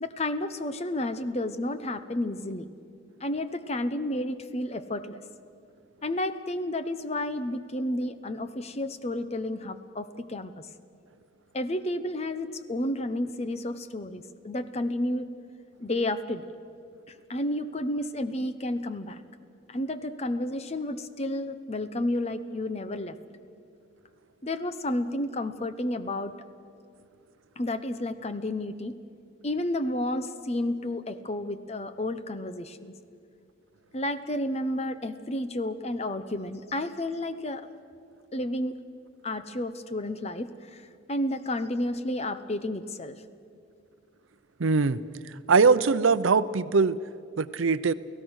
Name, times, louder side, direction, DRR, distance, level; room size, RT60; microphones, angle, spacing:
voice 1, 0.0-2.7 3.2-5.2 6.0-10.7 11.5-15.3 15.8-16.4 17.3-19.2 19.7-23.2 24.4-26.3 27.6-29.0 29.4-32.9 33.9-37.7 38.3-38.8 39.2-43.2, left 1 dB, 30° left, 11 dB, 0.8 m, -31 dB
voice 2, 44.6-45.0 45.5-47.0 47.4-47.9, right 4 dB, 80° right, 15 dB, 0.6 m, -21 dB
29.5 x 17.0 x 6.4 m, 2.4 s
head